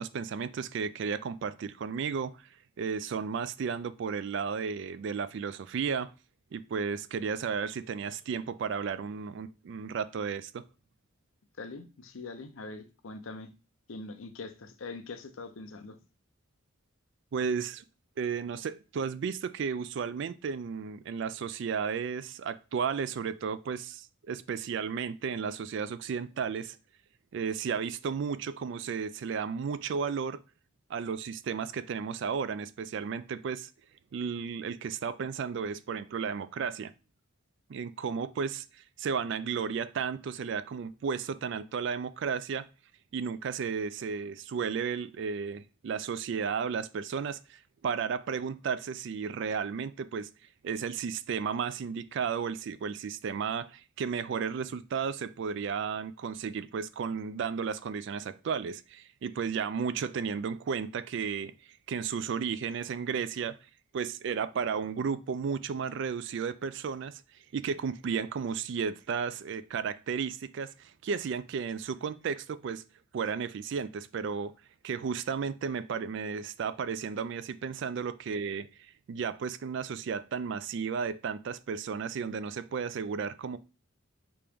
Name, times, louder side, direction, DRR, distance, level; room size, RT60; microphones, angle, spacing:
voice 1, 0.0-6.1 6.5-10.6 17.3-17.8 18.2-26.8 27.3-30.4 30.9-33.7 34.1-36.9 37.7-42.7 43.1-50.3 50.6-61.5 61.9-63.6 63.9-67.2 67.5-72.8 73.1-74.5 74.8-83.6, right 6 dB, 55° right, 0.3 m, -33 dB
voice 2, 11.6-13.5 13.9-16.0, left 3 dB, 70° left, 0.6 m, -43 dB
5.1 x 2.9 x 3.4 m
head